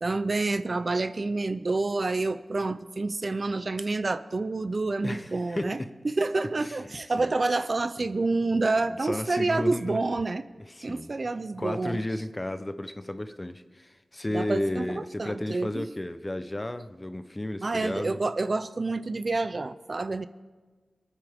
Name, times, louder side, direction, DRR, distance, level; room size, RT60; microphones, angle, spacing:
voice 1, 0.0-5.8 6.0-10.4 10.8-12.0 14.3-15.9 17.6-20.3, right 3 dB, 40° right, 12 dB, 0.5 m, -28 dB
voice 2, 5.0-5.9 6.6-7.3 9.0-10.0 10.7-11.1 11.6-18.2, left 1 dB, 20° left, 10 dB, 0.7 m, -33 dB
26.5 x 9.8 x 3.6 m, 1.4 s
wide cardioid pair, 100°, 0 cm